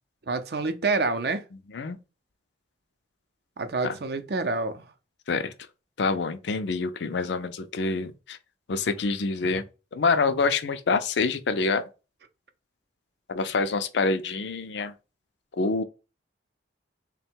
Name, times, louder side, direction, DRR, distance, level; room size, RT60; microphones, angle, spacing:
voice 1, 0.3-1.4 3.6-4.9, right 3 dB, 60° right, 0.5 m, -27 dB
voice 2, 6.0-8.4 8.7-9.6 9.9-11.9 13.3-14.9 15.6-15.8, left 4 dB, 70° left, 0.4 m, -26 dB
3.6 x 2.2 x 4.3 m
head